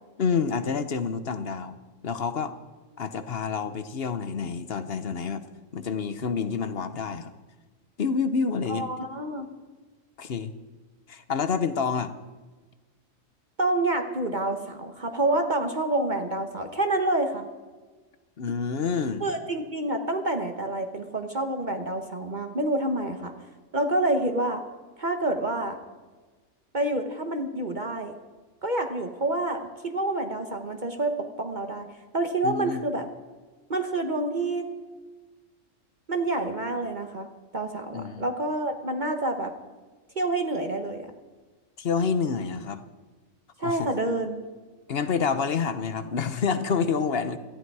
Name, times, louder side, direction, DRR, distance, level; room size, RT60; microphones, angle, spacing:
voice 1, 0.2-1.8 2.0-2.5 3.0-5.4 5.7-7.3 8.0-8.9 10.2-10.5 11.1-12.1 18.4-19.2 32.4-32.8 37.9-38.3 41.8-42.8 43.6-43.9 44.9-47.4, left 5 dB, 50° left, 11 dB, 1.0 m, -28 dB
voice 2, 8.7-9.5 13.6-17.5 19.2-23.3 23.7-24.6 25.0-25.8 26.7-28.1 28.6-31.9 32.1-33.1 33.7-34.6 36.1-37.3 37.5-39.5 40.2-41.1 43.6-44.4, right 2 dB, 35° right, 5 dB, 1.2 m, -28 dB
18.0 x 14.0 x 4.8 m, 1.3 s
omnidirectional pair, 1.4 m